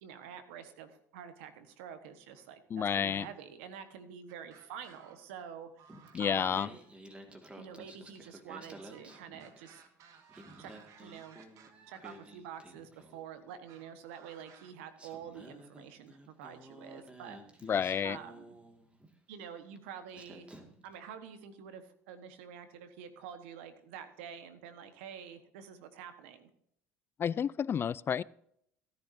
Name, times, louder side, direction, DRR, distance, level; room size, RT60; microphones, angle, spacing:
voice 1, 0.0-5.9 6.2-6.8 7.5-9.8 10.6-10.7 11.0-11.4 11.9-17.4 18.0-18.6 19.3-20.5 20.8-26.5, right 8 dB, 85° right, 9 dB, 1.3 m, -47 dB
voice 2, 2.7-3.3 6.1-6.7 17.6-18.2 27.2-28.2, left 8 dB, 35° left, 22 dB, 0.3 m, -30 dB
sound 1, 4.3-5.5 5.8-7.0 8.8-12.4 13.7-14.7, right 6 dB, 60° right, 1.6 m, -59 dB
Singing, 5.9-9.8 10.2-13.4 14.4-14.5 15.0-19.2 19.8-19.9 20.1-20.9, right 1 dB, 15° right, 2.0 m, -53 dB
16.0 x 10.5 x 2.7 m, 0.71 s
supercardioid pair, 80°, 6 cm